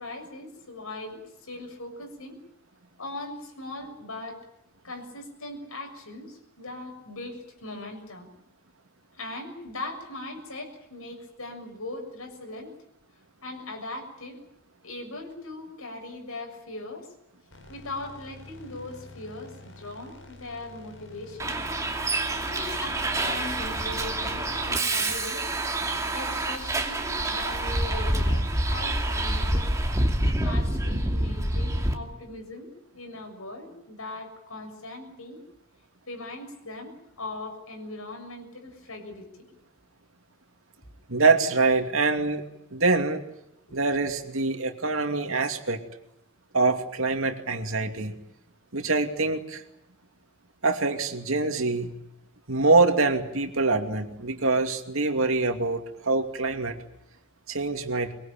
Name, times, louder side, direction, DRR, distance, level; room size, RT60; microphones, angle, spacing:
voice 1, 0.0-2.4 3.0-4.4 4.8-8.3 9.1-12.7 13.4-14.4 14.8-17.1 17.7-21.6 22.4-25.4 26.1-29.7 30.2-35.4 36.1-39.5 40.8-40.9 43.7-43.8, left 2 dB, 90° left, 4 dB, 6.8 m, -39 dB
sound 1, 17.5-26.7, left 2 dB, 65° left, 7.5 m, -48 dB
Bus, 21.4-31.9, right 1 dB, 15° right, 2.6 m, -27 dB
voice 2, 41.1-42.4 42.7-43.2 43.7-45.8 46.5-48.1 48.7-49.6 50.6-52.0 52.5-56.8 57.5-58.1, right 3 dB, 75° right, 5 dB, 2.6 m, -24 dB
23.5 x 22.5 x 8.9 m, 0.81 s
head